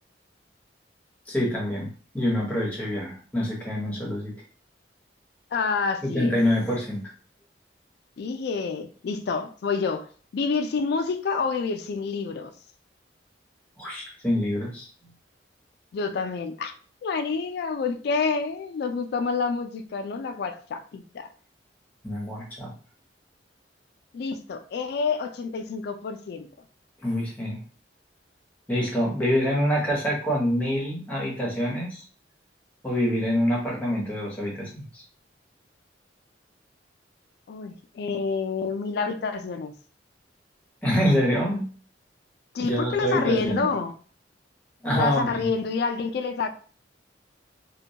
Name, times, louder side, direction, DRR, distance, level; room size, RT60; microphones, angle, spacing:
voice 1, 1.3-4.3 6.0-7.0 13.8-14.9 22.0-22.7 27.0-27.6 28.7-32.0 32.8-35.0 40.8-41.7 42.6-43.7 44.8-45.5, equal, 10° left, -4 dB, 0.8 m, -26 dB
voice 2, 5.5-6.4 8.2-10.1 10.3-12.5 15.9-16.7 17.0-21.3 24.1-26.5 37.5-39.7 42.5-43.9 45.0-46.5, left 4 dB, 60° left, 7 dB, 0.3 m, -28 dB
2.3 x 2.2 x 2.7 m, 0.41 s
head